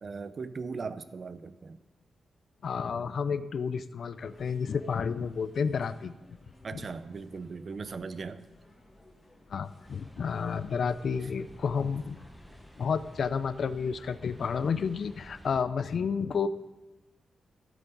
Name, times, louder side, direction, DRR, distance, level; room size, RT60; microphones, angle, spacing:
voice 1, 0.0-1.8 6.6-8.5 11.2-11.3, right 4 dB, 45° right, 13 dB, 0.6 m, -39 dB
voice 2, 2.6-6.1 9.5-12.2 12.8-16.5, left 6 dB, 60° left, 14 dB, 0.5 m, -31 dB
sound 1, 4.1-13.3, left 1 dB, 25° left, 2.4 m, -58 dB
sound 2, 9.8-15.6, right 1 dB, ahead, 0.8 m, -52 dB
14.5 x 8.4 x 3.9 m, 1.1 s
wide cardioid pair, 115°, 0 cm